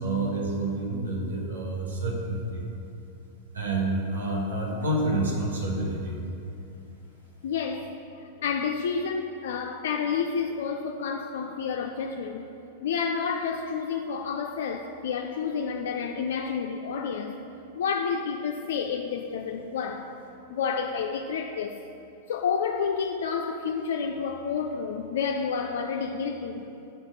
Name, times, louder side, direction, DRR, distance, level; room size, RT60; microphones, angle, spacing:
voice 1, 0.0-2.6 3.5-6.2, right 2 dB, 90° right, -2 dB, 1.3 m, -28 dB
voice 2, 7.4-7.9 8.4-12.5 12.8-17.3 17.8-20.1 20.5-21.8 22.3-26.7, left 6 dB, 75° left, 3 dB, 0.4 m, -30 dB
5.7 x 4.9 x 6.5 m, 2.8 s
hypercardioid pair, 105°, 0 cm